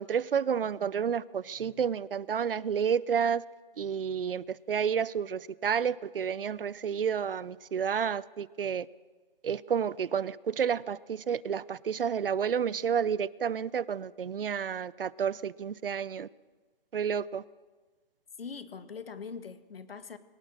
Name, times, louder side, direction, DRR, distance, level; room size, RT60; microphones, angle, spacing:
voice 1, 0.0-3.4 3.8-8.9 9.4-16.3 16.9-17.4, right 7 dB, 65° right, 0.7 m, -30 dB
voice 2, 18.4-20.2, left 5 dB, 75° left, 1.8 m, -42 dB
23.5 x 18.5 x 6.5 m
hypercardioid pair, 175°, 29 cm